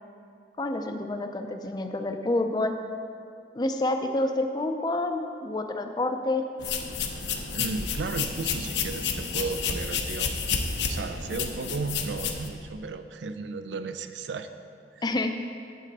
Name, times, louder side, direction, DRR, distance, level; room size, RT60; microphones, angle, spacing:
voice 1, 0.6-2.7 3.5-6.4 15.0-15.4, left 2 dB, 25° left, 6 dB, 0.4 m, -28 dB
sound 1, 6.6-12.5, left 5 dB, 85° left, 0.7 m, -30 dB
voice 2, 7.5-10.6 10.9-14.5 14.9-15.0, right 4 dB, 90° right, 10 dB, 0.4 m, -34 dB
8.4 x 7.4 x 4.0 m, 2.4 s
head